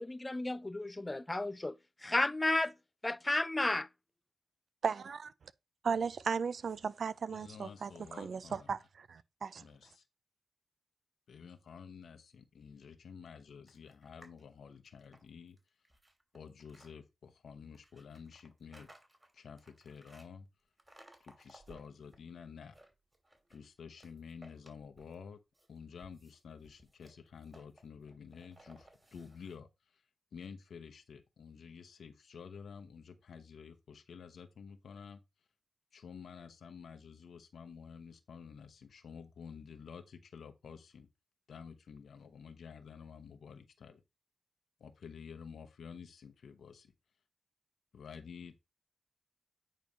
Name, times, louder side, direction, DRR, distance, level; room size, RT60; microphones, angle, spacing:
voice 1, 0.0-1.8 2.0-2.7 3.0-3.8, left 2 dB, 20° left, 0.4 m, -32 dB
voice 2, 4.8-5.3 5.8-7.9 8.2-9.6, right 6 dB, 70° right, 0.5 m, -36 dB
voice 3, 7.3-8.7 9.6-10.1 11.3-15.6 16.3-18.9 19.3-20.5 21.2-22.8 23.5-25.4 25.7-30.0 30.3-35.2 35.9-41.1 41.5-44.0 44.8-46.9 47.9-48.6, left 6 dB, 80° left, 0.9 m, -51 dB
sound 1, 13.7-14.4 14.8-16.9 17.7-20.3 20.8-22.2 22.5-23.6 24.0-25.2 25.5-29.6, right 1 dB, 20° right, 2.7 m, -61 dB
9.0 x 3.1 x 5.3 m
cardioid pair, 65°, 0 cm